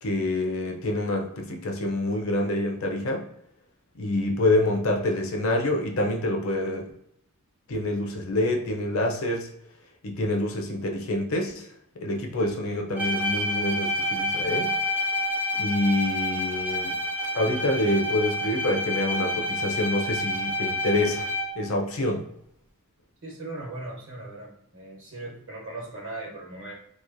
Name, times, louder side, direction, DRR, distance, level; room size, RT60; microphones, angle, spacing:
voice 1, 0.0-3.3 4.0-6.9 7.7-9.5 10.0-11.7 12.0-14.8 15.6-16.9 17.3-21.3 21.6-22.2, left 1 dB, 65° left, 2 dB, 0.5 m, -26 dB
Bowed string instrument, 13.0-21.7, left 1 dB, 5° right, 0.4 m, -28 dB
voice 2, 23.2-26.7, right 2 dB, 60° right, -4 dB, 1.1 m, -38 dB
3.0 x 2.4 x 2.5 m, 0.73 s
head